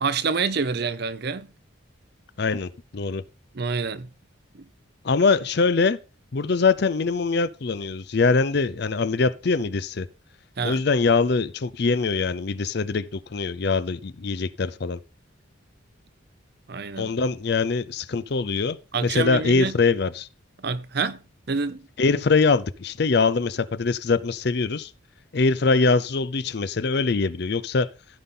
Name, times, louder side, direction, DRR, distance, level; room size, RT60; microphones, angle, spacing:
voice 1, 0.0-1.5 3.5-4.1 4.5-4.7 10.6-10.8 16.7-17.1 18.9-19.7 20.6-21.2 21.5-21.8, right 5 dB, 50° right, 0.6 m, -27 dB
voice 2, 2.4-3.2 5.0-6.0 6.3-10.1 10.6-15.0 17.0-18.8 19.0-20.3 22.0-24.9 25.3-27.9, left 4 dB, 50° left, 0.5 m, -23 dB
15.5 x 5.5 x 3.8 m
head